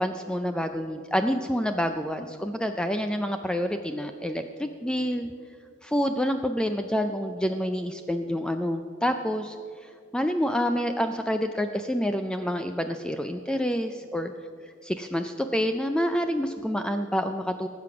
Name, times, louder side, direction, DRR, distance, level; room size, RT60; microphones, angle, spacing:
voice 1, 0.0-5.3 5.8-9.6 9.8-14.3 14.8-17.7, equal, 5° left, 7 dB, 0.4 m, -28 dB
18.5 x 7.7 x 6.0 m, 2.3 s
head